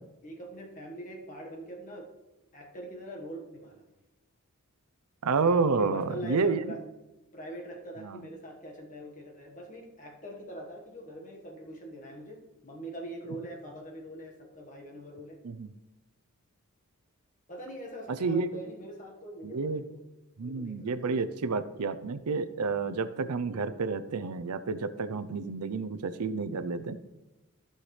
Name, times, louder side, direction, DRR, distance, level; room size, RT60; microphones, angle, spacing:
voice 1, 0.2-2.1 2.5-3.8 5.8-6.8 7.3-15.4 17.5-20.0 20.4-21.1, right 1 dB, 35° left, 0 dB, 1.5 m, -43 dB
voice 2, 5.2-6.6 8.0-8.2 15.4-15.7 18.1-18.5 19.4-19.8 20.4-27.0, right 4 dB, 85° right, 12 dB, 0.6 m, -30 dB
15.0 x 5.7 x 3.3 m, 1.0 s
head